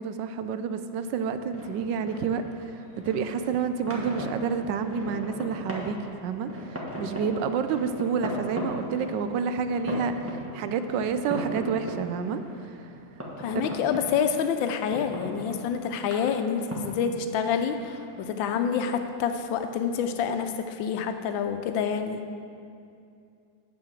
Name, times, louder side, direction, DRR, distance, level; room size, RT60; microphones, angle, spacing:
voice 1, 0.0-12.9 13.5-13.6, right 6 dB, 75° right, 10 dB, 1.2 m, -29 dB
sound 1, 1.1-20.4, equal, 10° right, 1.2 m, -39 dB
voice 2, 13.4-22.3, left 7 dB, 85° left, 7 dB, 1.4 m, -28 dB
9.6 x 5.8 x 7.3 m, 2.5 s
omnidirectional pair, 2.0 m